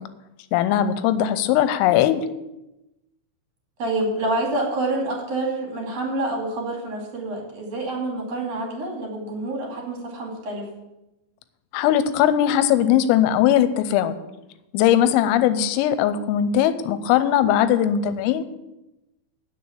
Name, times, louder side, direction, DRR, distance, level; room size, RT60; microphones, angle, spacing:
voice 1, 0.5-2.3 11.7-14.2 14.7-18.5, left 10 dB, 90° left, 12 dB, 3.3 m, -19 dB
voice 2, 3.8-10.7, right 2 dB, 40° right, 0 dB, 2.7 m, -27 dB
9.5 x 6.6 x 8.7 m, 0.94 s
omnidirectional pair, 5.9 m